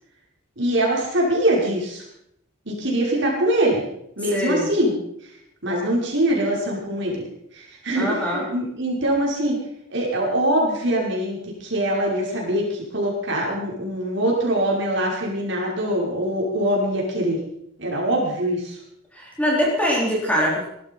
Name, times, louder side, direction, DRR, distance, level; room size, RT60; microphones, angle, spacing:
voice 1, 0.6-2.0 2.7-3.8 4.2-5.0 5.6-7.3 7.5-9.6 9.9-17.4 17.8-18.8, right 1 dB, 55° right, -3 dB, 6.0 m, -23 dB
voice 2, 4.3-4.6 8.0-8.4 19.2-20.7, equal, 5° left, -3 dB, 4.3 m, -22 dB
18.5 x 13.0 x 5.6 m, 0.75 s
head